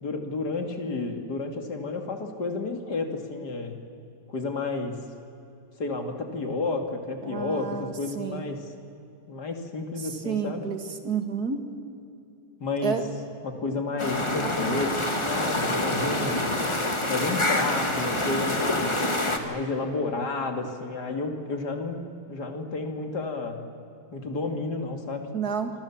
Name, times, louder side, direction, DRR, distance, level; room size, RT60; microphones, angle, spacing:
voice 1, 0.0-3.8 4.3-5.0 5.8-8.7 9.3-10.7 12.6-13.1 13.4-16.5 17.1-19.1 19.4-23.6 24.1-25.3, left 3 dB, 80° left, 5 dB, 3.0 m, -31 dB
voice 2, 7.2-8.4 10.2-11.6 12.8-13.0 25.3-25.7, right 6 dB, 70° right, 6 dB, 2.6 m, -30 dB
sound 1, 14.0-19.4, left 1 dB, 20° left, 1.9 m, -26 dB
27.0 x 25.0 x 7.3 m, 2.7 s
omnidirectional pair, 1.7 m